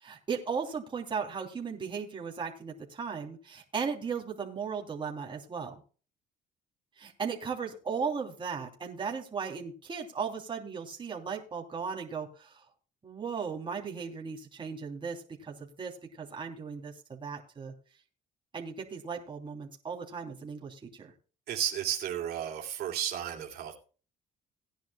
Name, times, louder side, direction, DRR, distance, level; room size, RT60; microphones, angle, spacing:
voice 1, 0.0-5.8 7.0-12.6 13.0-17.7 18.5-21.1, right 6 dB, 30° right, 0 dB, 3.2 m, -36 dB
voice 2, 21.5-23.7, right 10 dB, 70° right, 1 dB, 3.0 m, -33 dB
18.0 x 10.5 x 2.3 m, 0.37 s
cardioid pair, 110°, 17 cm